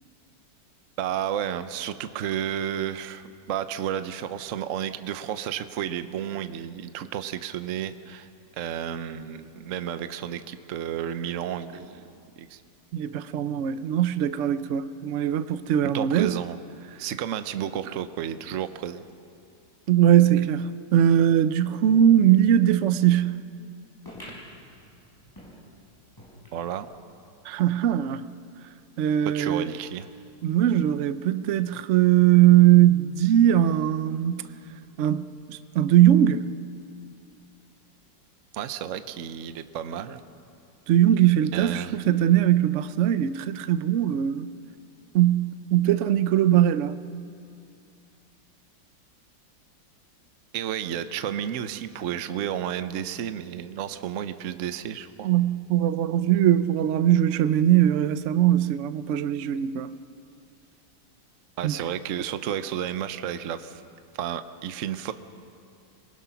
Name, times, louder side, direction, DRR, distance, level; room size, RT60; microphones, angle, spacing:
voice 1, 1.0-8.3 8.6-12.6 15.9-16.6 17.0-19.0 26.5-26.9 29.2-30.1 38.5-40.2 41.5-42.0 50.5-55.3 61.6-63.8 64.1-65.1, right 10 dB, 60° right, 0.9 m, -32 dB
voice 2, 12.9-16.4 19.9-23.4 27.4-28.2 29.0-29.7 30.4-34.5 35.0-36.5 40.9-44.5 45.1-47.0 55.2-60.0 61.6-61.7, right 11 dB, 90° right, 0.6 m, -20 dB
sound 1, 24.0-27.0 27.4-27.5 27.7-27.8 28.6-28.7, equal, 10° left, 5.7 m, -47 dB
27.0 x 20.0 x 5.8 m
omnidirectional pair, 2.0 m